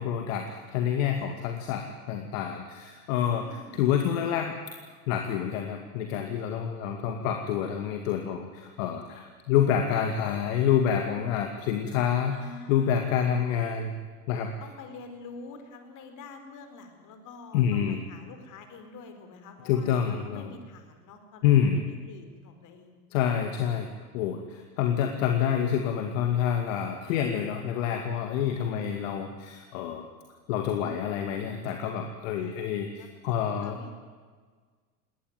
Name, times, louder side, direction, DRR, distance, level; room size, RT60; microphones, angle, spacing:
voice 1, 0.0-4.5 5.1-12.4 12.7-13.9 14.3-14.5 17.5-18.0 19.6-20.5 21.4-21.8 23.1-23.9 24.1-30.1 30.5-33.8, left 8 dB, 60° left, 5 dB, 2.4 m, -27 dB
voice 2, 3.2-3.7 12.3-13.0 14.6-23.0 28.4-29.0 32.4-33.1 33.6-33.9, left 4 dB, 40° left, 7 dB, 4.5 m, -47 dB
20.0 x 18.5 x 9.4 m, 1.5 s
hypercardioid pair, 95°, 46 cm